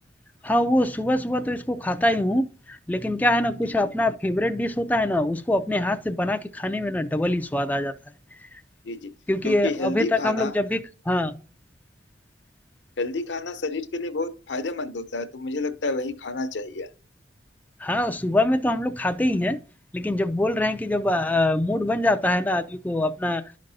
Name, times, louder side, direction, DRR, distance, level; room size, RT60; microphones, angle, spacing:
voice 1, 0.4-7.9 8.4-8.5 9.3-11.3 17.8-19.6 19.9-23.4, left 1 dB, 10° left, 0.3 m, -24 dB
voice 2, 9.4-10.5 13.0-16.9, left 3 dB, 70° left, 0.8 m, -29 dB
11.5 x 5.2 x 2.7 m
head